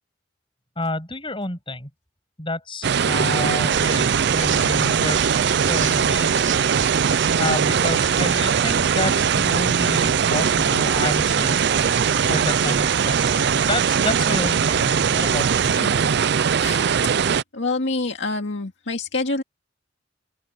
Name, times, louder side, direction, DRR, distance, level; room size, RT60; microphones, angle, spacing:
voice 1, 0.8-1.9 2.4-5.4 5.7-6.3 6.7-6.8 7.4-11.6 12.3-15.8, left 2 dB, 25° left, 6.8 m, -29 dB
sound 1, 2.8-17.4, right 7 dB, 60° right, 0.5 m, -20 dB
sound 2, 3.7-15.8, right 9 dB, 75° right, 2.8 m, -32 dB
voice 2, 15.8-16.1 16.6-16.8 17.5-19.4, left 3 dB, 65° left, 2.2 m, -27 dB
open air
head